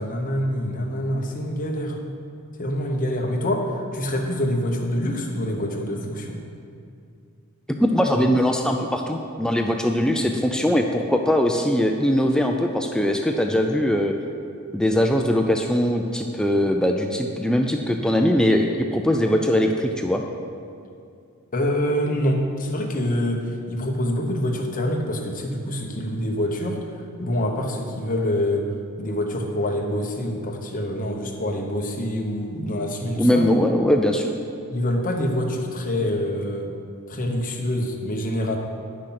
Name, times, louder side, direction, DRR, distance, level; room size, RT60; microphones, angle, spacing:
voice 1, 0.0-2.0 2.6-6.4 21.5-28.7 29.0-33.5 34.7-36.7 37.1-38.6, left 1 dB, 40° left, 1 dB, 1.1 m, -26 dB
voice 2, 7.8-14.1 14.7-18.7 18.9-20.2 33.2-34.3, equal, 5° left, 3 dB, 0.4 m, -21 dB
10.0 x 6.3 x 5.9 m, 2.4 s
head